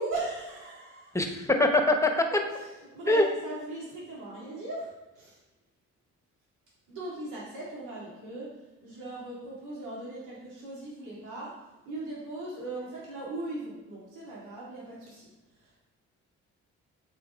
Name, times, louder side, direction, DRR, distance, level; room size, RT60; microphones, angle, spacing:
voice 1, 0.0-1.1 2.6-5.4 6.9-8.5 8.8-11.5 11.8-15.3 15.5-15.7, right 2 dB, 80° right, -7 dB, 2.1 m, -38 dB
voice 2, 1.1-2.2 3.1-3.2, left 2 dB, 10° left, 4 dB, 0.9 m, -23 dB
8.1 x 4.4 x 3.5 m, 1.1 s
cardioid pair, 90°, 30 cm